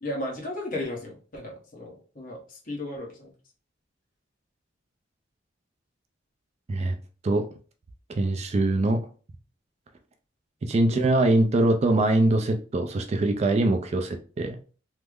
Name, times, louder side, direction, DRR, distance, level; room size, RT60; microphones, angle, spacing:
voice 1, 0.0-3.3 10.8-11.2, left 1 dB, 45° left, -1 dB, 1.0 m, -35 dB
voice 2, 8.1-9.0 10.6-14.6, right 2 dB, 35° right, 6 dB, 0.3 m, -23 dB
3.2 x 2.0 x 3.5 m, 0.38 s
head